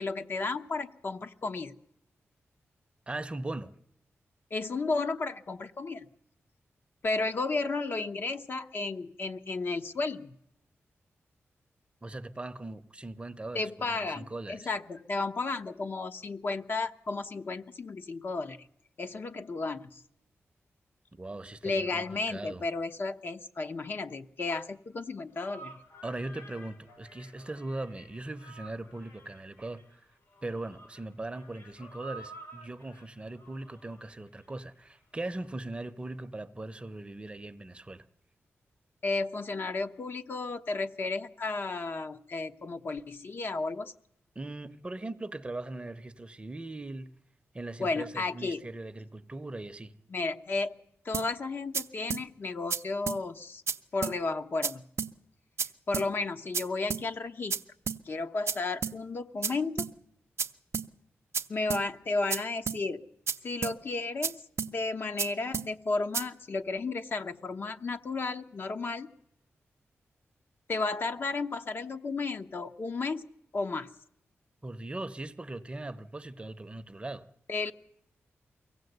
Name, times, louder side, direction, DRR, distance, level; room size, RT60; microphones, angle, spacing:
voice 1, 0.0-1.8 4.5-6.1 7.0-10.3 13.5-18.7 19.0-20.0 21.6-25.8 39.0-43.9 47.8-48.6 50.1-50.7 51.0-53.6 53.9-54.8 55.9-57.6 58.0-59.9 61.5-63.0 63.4-64.4 64.7-69.1 70.7-73.3 73.5-73.9 77.5-77.7, left 3 dB, 50° left, 0.9 m, -33 dB
voice 2, 3.1-3.7 12.0-14.7 21.1-22.6 26.0-30.0 30.4-38.0 44.3-47.1 47.5-50.0 74.6-77.3, right 2 dB, 25° right, 0.7 m, -40 dB
sound 1, 25.4-34.8, right 2 dB, 90° left, 3.0 m, -51 dB
sound 2, 51.1-51.3 51.7-51.8 52.1-52.2 52.7-52.8 53.1-53.2 53.7-53.8 54.0-54.2 54.6-54.7 55.0-55.1 55.6-55.7 55.9-56.1 56.5-56.6 56.9-57.0 57.5-57.6 57.9-58.0 58.5-58.6 58.8-59.0 59.4-59.5 59.8-59.9 60.4-60.5 60.7-60.9 61.3-61.4 61.7-61.8 62.3-62.4 62.7-62.8 63.3-63.4 63.6-63.8 64.2-64.3 64.6-64.7 65.2-65.3 65.5-65.7 66.1-66.2, right 6 dB, 75° right, 0.7 m, -31 dB
23.5 x 17.0 x 8.0 m
wide cardioid pair, 130°, 5 cm